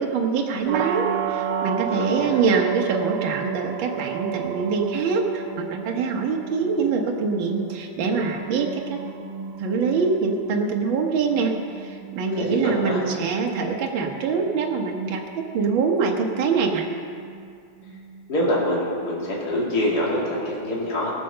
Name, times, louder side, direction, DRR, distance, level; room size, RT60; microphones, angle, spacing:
voice 1, 0.0-9.0 9.6-16.9, right 5 dB, 65° right, 1 dB, 1.8 m, -24 dB
sound 1, 0.7-20.5, right 8 dB, 90° right, 1.7 m, -34 dB
voice 2, 1.9-2.4 12.3-13.0 18.3-21.1, left 1 dB, 45° left, -5 dB, 3.0 m, -25 dB
17.0 x 6.6 x 6.7 m, 2.3 s
omnidirectional pair, 2.4 m